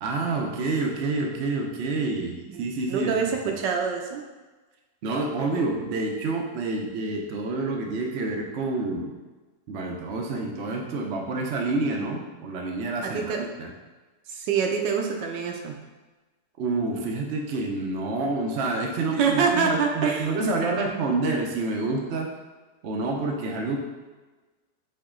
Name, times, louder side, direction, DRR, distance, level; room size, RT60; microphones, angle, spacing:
voice 1, 0.0-3.1 5.0-9.1 9.7-13.7 16.6-22.3 22.8-23.8, right 3 dB, 65° right, 1 dB, 0.7 m, -28 dB
voice 2, 2.5-4.2 13.0-13.4 14.3-15.8 19.1-20.3, right 6 dB, 80° right, 2 dB, 1.3 m, -26 dB
4.7 x 3.0 x 3.6 m, 1.2 s
omnidirectional pair, 1.9 m